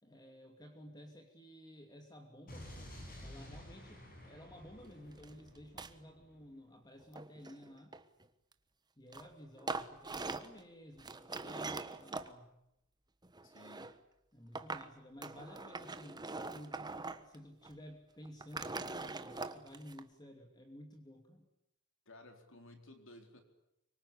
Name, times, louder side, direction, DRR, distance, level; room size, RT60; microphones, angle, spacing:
voice 1, 0.0-8.0 9.0-12.5 14.3-21.5, equal, 20° left, 4 dB, 2.8 m, -54 dB
Explosion, 2.5-6.5, equal, 40° left, 7.8 m, -52 dB
sound 1, 5.2-5.3 5.5-5.9 7.0-8.2 9.1-9.3 9.6-10.6 11.0-12.3 13.2-13.9 14.5-14.9 15.2-17.4 17.6-17.7 18.2-20.0, right 3 dB, 20° right, 1.3 m, -43 dB
voice 2, 13.4-13.9 22.1-23.4, left 1 dB, 60° left, 5 dB, 4.3 m, -56 dB
25.0 x 24.0 x 10.0 m, 0.83 s
head